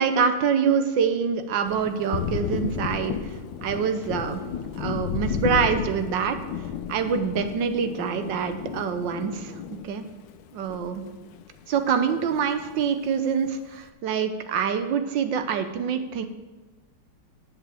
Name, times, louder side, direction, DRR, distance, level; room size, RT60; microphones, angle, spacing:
voice 1, 0.0-3.3 3.6-4.4 4.7-6.4 6.9-9.5 9.8-10.0 10.5-11.0 11.7-16.3, right 7 dB, 90° right, 9 dB, 1.6 m, -25 dB
Thunder, 1.7-11.4 11.7-12.9, left 8 dB, 90° left, 1.4 m, -33 dB
7.9 x 7.7 x 7.6 m, 1.2 s
omnidirectional pair, 1.9 m